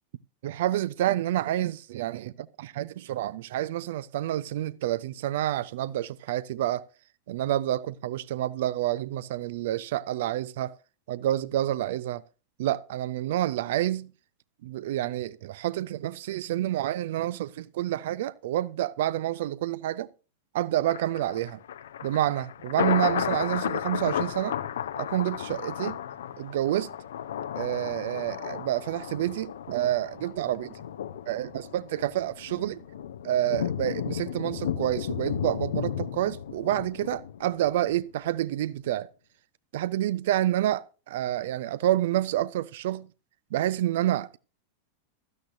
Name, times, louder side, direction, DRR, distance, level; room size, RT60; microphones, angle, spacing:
voice 1, 0.4-6.9 7.3-10.7 11.1-12.2 12.6-14.1 14.6-20.1 20.5-21.6 22.0-24.6 25.0-26.0 26.4-26.9 27.5-30.8 31.3-32.8 33.2-39.1 39.7-43.1 43.5-44.4, right 13 dB, 55° right, 0.5 m, -28 dB
Thunder, 20.9-38.0 38.3-38.4, left 9 dB, 60° left, 0.6 m, -34 dB
16.0 x 13.0 x 2.6 m
figure-of-eight pair, 90°, 0 cm